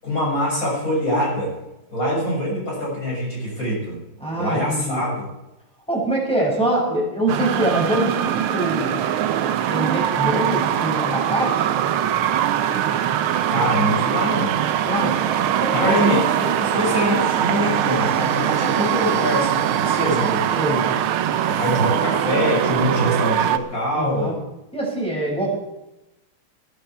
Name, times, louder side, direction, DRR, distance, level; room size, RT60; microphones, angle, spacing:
voice 1, 0.0-1.5 1.9-4.0 4.4-5.3 13.5-15.4 15.7-20.5 21.4-24.4, equal, 40° left, -4 dB, 7.2 m, -24 dB
voice 2, 4.2-5.0 5.9-8.9 9.7-11.7 14.8-15.1 15.6-16.1 18.6-18.7 20.6-20.8 23.9-24.3 24.7-25.6, right 1 dB, ahead, -2 dB, 5.9 m, -24 dB
sound 1, 7.3-23.6, right 10 dB, 85° right, 1.7 m, -22 dB
20.5 x 11.5 x 4.6 m, 0.94 s
omnidirectional pair, 2.3 m